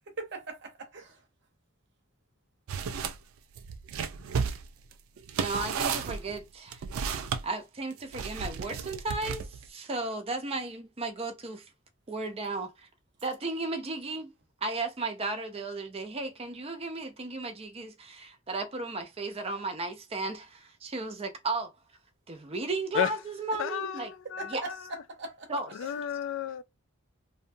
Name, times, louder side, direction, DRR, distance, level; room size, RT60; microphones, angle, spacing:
voice 1, 0.1-1.3 23.5-23.6 24.2-25.5 25.8-26.0, right 3 dB, 60° right, 0.8 m, -41 dB
sound 1, 2.7-3.2 3.5-7.4 8.1-9.7, right 6 dB, 90° right, 0.4 m, -33 dB
voice 2, 5.4-6.8 7.4-11.7 12.1-12.9 13.2-14.3 14.6-21.7 22.3-24.1 24.5-24.6 25.5-25.7, right 3 dB, 30° right, 0.5 m, -34 dB
voice 3, 23.6-24.5 25.7-26.6, left 8 dB, 65° left, 0.3 m, -32 dB
2.7 x 2.2 x 2.6 m
head